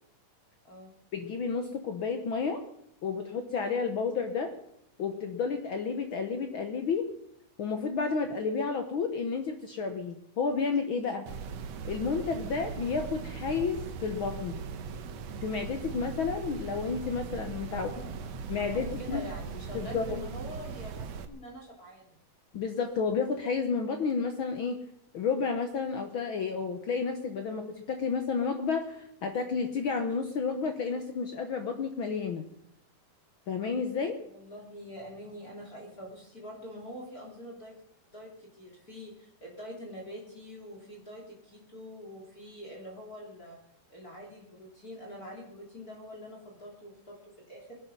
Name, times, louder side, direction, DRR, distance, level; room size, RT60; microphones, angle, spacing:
voice 1, 1.1-2.6 3.0-4.5 5.0-7.0 7.6-11.3 11.8-14.6 15.4-17.9 18.5-19.2 19.7-20.2 22.5-24.8 25.1-32.4 33.5-34.2, left 5 dB, 85° left, 6 dB, 1.1 m, -31 dB
sound 1, 11.3-21.3, right 6 dB, 65° right, 1.8 m, -39 dB
voice 2, 17.7-22.2 34.2-37.7 38.1-43.6 43.9-47.8, equal, 25° left, -1 dB, 3.1 m, -45 dB
21.0 x 11.5 x 5.5 m, 0.76 s
omnidirectional pair, 3.9 m